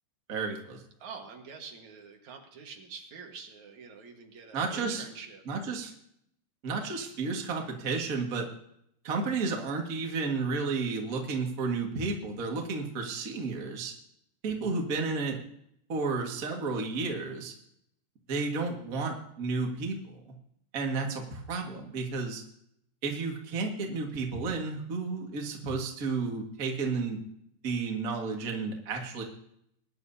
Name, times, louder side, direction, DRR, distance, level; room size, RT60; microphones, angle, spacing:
voice 1, 0.3-0.8 4.5-5.0 5.5-5.9 6.6-8.5 9.0-13.9 14.4-15.4 15.9-17.5 18.3-20.2 20.7-22.4 23.0-27.2 27.6-29.2, right 4 dB, 80° right, 1 dB, 0.7 m, -32 dB
voice 2, 1.0-5.4, right 5 dB, 55° right, 2 dB, 2.3 m, -46 dB
21.0 x 10.5 x 2.7 m, 0.72 s
omnidirectional pair, 4.9 m